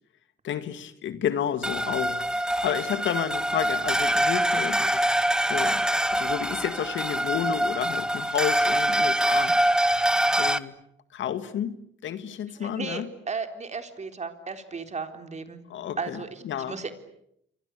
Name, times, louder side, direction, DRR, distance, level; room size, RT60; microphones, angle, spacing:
voice 1, 0.4-5.8 6.1-9.5 10.4-10.7 11.1-13.1 15.7-16.8, left 9 dB, 75° left, 11 dB, 2.1 m, -31 dB
sound 1, 1.6-10.6, right 1 dB, 5° right, 1.2 m, -24 dB
voice 2, 12.6-15.6 16.0-16.9, right 4 dB, 35° right, 7 dB, 3.9 m, -35 dB
28.5 x 24.0 x 8.5 m, 0.75 s
cardioid pair, 90°, 20 cm